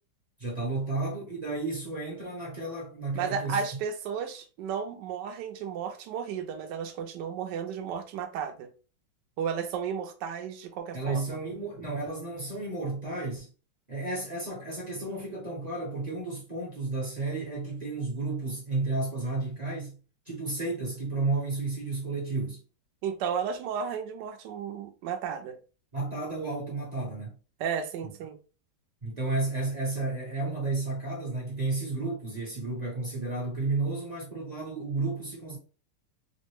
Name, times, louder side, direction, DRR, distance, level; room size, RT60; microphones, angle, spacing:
voice 1, 0.4-3.6 10.9-13.5 13.9-19.9 20.3-22.6 25.9-27.3 28.0-28.1 29.0-35.6, right 3 dB, 30° right, 0.7 m, -32 dB
voice 2, 3.1-8.7 9.4-11.4 23.0-25.6 27.6-28.4, right 7 dB, 70° right, 1.1 m, -33 dB
3.9 x 2.1 x 3.1 m
omnidirectional pair, 2.3 m